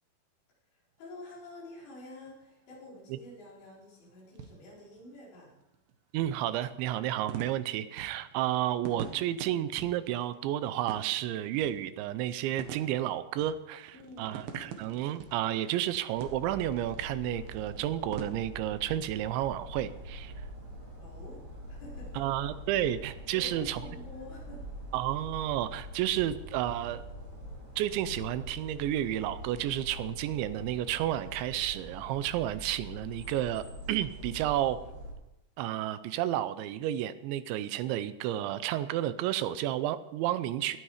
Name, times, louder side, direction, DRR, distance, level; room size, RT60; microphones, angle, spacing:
voice 1, 0.7-5.6 13.9-14.5 21.0-21.4 21.7-22.3 23.3-24.7, left 1 dB, 75° left, -5 dB, 7.2 m, -48 dB
sound 1, 1.0-18.2, right 7 dB, 65° right, 2.9 m, -47 dB
voice 2, 6.1-20.3 22.2-23.8 24.9-27.0 27.8-34.8 35.6-40.8, right 12 dB, 85° right, 13 dB, 3.1 m, -31 dB
sound 2, 16.1-35.1, equal, 15° right, 6.1 m, -44 dB
18.0 x 12.5 x 5.0 m, 0.93 s
omnidirectional pair, 5.2 m